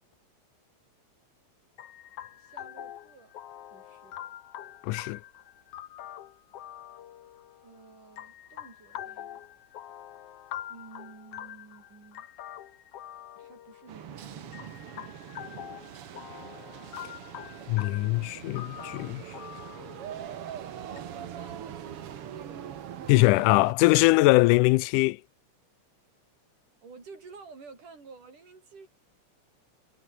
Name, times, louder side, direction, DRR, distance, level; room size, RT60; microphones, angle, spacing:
sound 1, 1.8-21.0, left 11 dB, 60° left, 1.9 m, -45 dB
voice 1, 2.3-3.3 3.7-4.2 7.6-9.5 10.7-12.3 13.4-15.4 20.9-23.0 26.8-28.9, right 4 dB, 80° right, 7.4 m, -51 dB
voice 2, 4.8-5.2 17.7-19.2 23.1-25.2, left 21 dB, 90° left, 2.1 m, -22 dB
sound 2, 13.9-23.7, right 9 dB, 55° right, 2.1 m, -42 dB
omnidirectional pair, 3.6 m